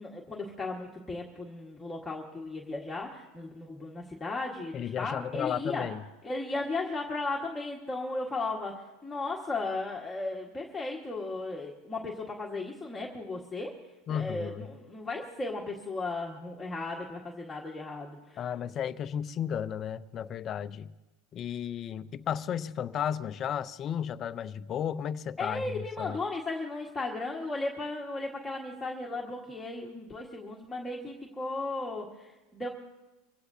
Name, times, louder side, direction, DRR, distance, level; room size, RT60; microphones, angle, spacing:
voice 1, 0.0-5.9 6.2-13.7 14.1-18.4 25.4-32.7, left 2 dB, 10° left, -3 dB, 1.6 m, -36 dB
voice 2, 4.7-6.0 14.1-14.7 18.4-20.9 21.3-26.2, left 9 dB, 35° left, 13 dB, 0.6 m, -34 dB
24.0 x 16.5 x 2.8 m, 1.1 s
supercardioid pair, 135°, 0 cm